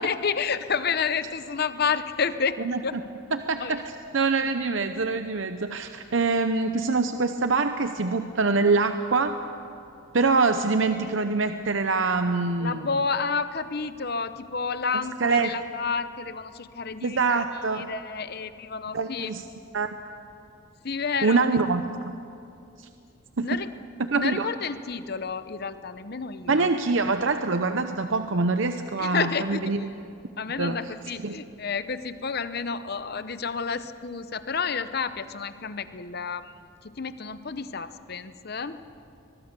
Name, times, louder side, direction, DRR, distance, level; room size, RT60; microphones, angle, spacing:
voice 1, 0.0-3.0 3.6-3.8 12.6-17.4 17.7-19.3 20.8-21.5 23.4-23.7 24.2-26.7 29.0-29.9 30.4-38.8, left 5 dB, 50° left, 12 dB, 0.8 m, -30 dB
voice 2, 3.3-3.8 4.1-9.3 10.1-12.8 15.2-15.5 17.0-17.9 18.9-19.4 19.7-19.9 21.2-22.1 22.8-22.9 23.4-23.5 24.1-24.5 26.5-29.8 30.6-30.8 31.2-31.4, right 4 dB, 65° right, 8 dB, 0.7 m, -24 dB
22.5 x 21.5 x 6.8 m, 2.6 s
head